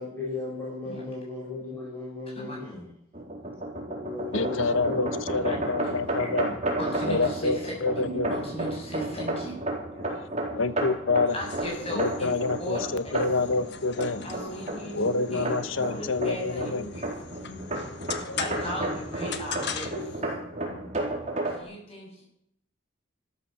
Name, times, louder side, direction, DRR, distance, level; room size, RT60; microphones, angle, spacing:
voice 1, 0.0-2.9 3.9-5.2 5.8-6.2 14.7-16.3 16.6-16.8 17.4-17.8, left 3 dB, 10° left, -6 dB, 5.0 m, -37 dB
voice 2, 0.6-1.0 1.4-1.5 4.3-4.6 5.4-5.5 6.2-6.4 9.9-10.3 11.7-12.1 12.8-12.9 14.3-15.1 18.2-18.5 19.9-21.3, equal, 85° left, 1 dB, 6.5 m, -43 dB
sound 1, 3.1-21.6, right 1 dB, 30° right, 4.2 m, -33 dB
voice 3, 4.3-6.5 7.1-8.3 10.6-11.3 11.9-14.2 14.9-16.9, left 3 dB, 65° left, 13 dB, 1.0 m, -27 dB
voice 4, 6.8-9.6 11.3-12.9 13.1-13.2 14.2-15.6 15.9-17.0 18.3-19.9 21.5-22.2, equal, 25° left, -2 dB, 7.4 m, -36 dB
sound 2, 11.3-20.2, left 6 dB, 50° left, 1.4 m, -40 dB
13.5 x 13.5 x 7.1 m, 0.72 s
head